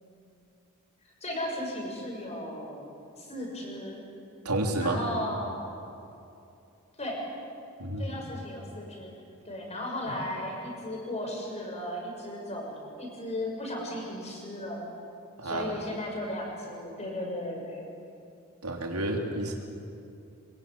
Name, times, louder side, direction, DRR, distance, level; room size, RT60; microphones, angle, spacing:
voice 1, 1.2-2.9 3.2-4.0 4.8-5.6 7.0-7.2 8.0-9.1 9.4-14.9 15.4-17.9, left 1 dB, 30° left, -1 dB, 6.7 m, -35 dB
voice 2, 4.5-5.0 7.8-8.2 15.4-15.7 18.6-19.6, right 1 dB, 85° right, 1 dB, 3.6 m, -30 dB
24.0 x 22.0 x 9.2 m, 2.7 s
head